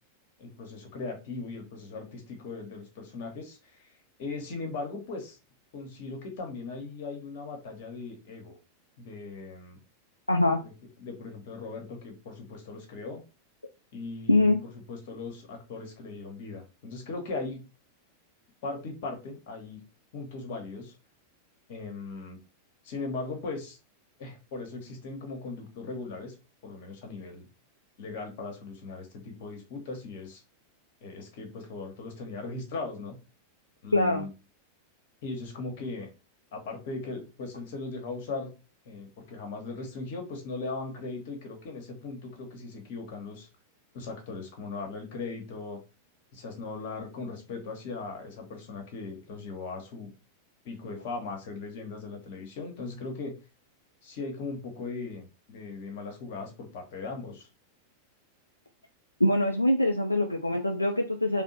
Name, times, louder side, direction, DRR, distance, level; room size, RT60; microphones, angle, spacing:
voice 1, 0.4-3.6 4.2-5.4 5.7-8.6 9.0-9.8 10.6-10.7 11.0-13.2 13.9-17.6 18.6-19.8 20.1-20.9 21.7-22.4 22.8-23.8 24.2-26.3 26.6-27.5 28.0-30.4 31.0-33.2 33.8-34.3 35.2-36.1 36.5-38.5 38.8-43.5 43.9-45.8 46.3-50.1 50.6-53.4 54.0-57.5, left 3 dB, 50° left, 3 dB, 1.1 m, -38 dB
voice 2, 10.3-10.6 14.3-14.6 33.9-34.2 59.2-61.4, left 1 dB, 85° left, 2 dB, 0.4 m, -23 dB
3.5 x 2.1 x 4.0 m, 0.30 s
figure-of-eight pair, 90°, 0 cm